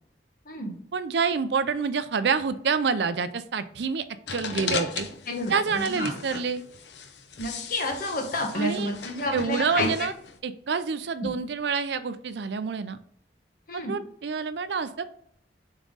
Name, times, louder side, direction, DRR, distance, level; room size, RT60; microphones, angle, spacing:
voice 1, 0.9-4.0 4.3-5.1 5.5-6.6 8.6-8.9 9.3-10.1 10.4-13.0 13.7-15.0, right 5 dB, 70° right, 13 dB, 0.5 m, -27 dB
sound 1, 4.3-10.4, left 4 dB, 75° left, 0.8 m, -36 dB
voice 2, 5.2-6.1 7.4-10.1 11.2-11.3 13.7-13.9, left 1 dB, 50° left, 3 dB, 1.4 m, -30 dB
7.1 x 3.7 x 3.9 m, 0.67 s
head